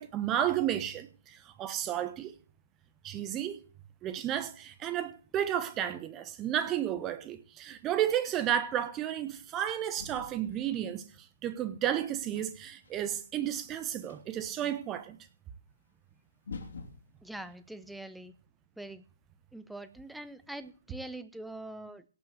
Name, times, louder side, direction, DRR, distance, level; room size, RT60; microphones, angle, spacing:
voice 1, 0.0-2.3 3.0-3.6 4.0-15.2, right 10 dB, 20° right, 11 dB, 1.2 m, -32 dB
sound 1, 10.0-11.2 12.0-14.5 15.9-16.0 16.4-18.5, left 4 dB, 60° left, 2.8 m, -48 dB
voice 2, 17.2-18.3 18.8-19.1 19.5-22.0, right 1 dB, ahead, 13 dB, 0.8 m, -43 dB
17.5 x 5.9 x 7.7 m, 0.38 s
figure-of-eight pair, 125°, 0 cm